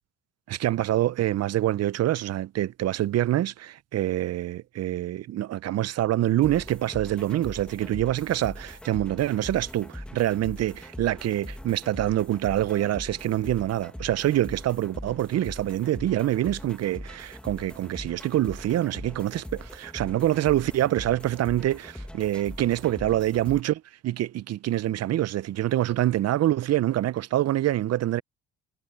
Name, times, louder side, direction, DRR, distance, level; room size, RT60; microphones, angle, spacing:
voice 1, 0.5-28.2, right 13 dB, 55° right, 0.5 m, -26 dB
sound 1, 6.4-23.6, left 1 dB, 5° left, 1.5 m, -41 dB
cardioid pair, 90°, 30 cm